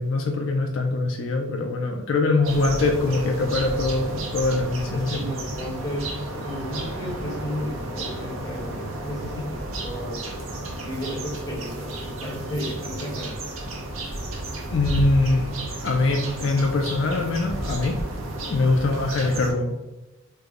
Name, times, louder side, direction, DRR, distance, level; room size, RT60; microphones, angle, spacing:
voice 1, 0.0-5.4 14.7-15.5 15.8-18.0 18.5-19.8, left 3 dB, 70° left, 2 dB, 0.4 m, -23 dB
sound 1, 2.4-19.5, right 1 dB, 80° right, 0.7 m, -32 dB
voice 2, 4.9-6.0 6.3-9.4 9.8-10.2 10.9-13.4 18.6-18.8, equal, 15° left, -5 dB, 1.0 m, -33 dB
3.2 x 2.1 x 3.5 m, 1.0 s
head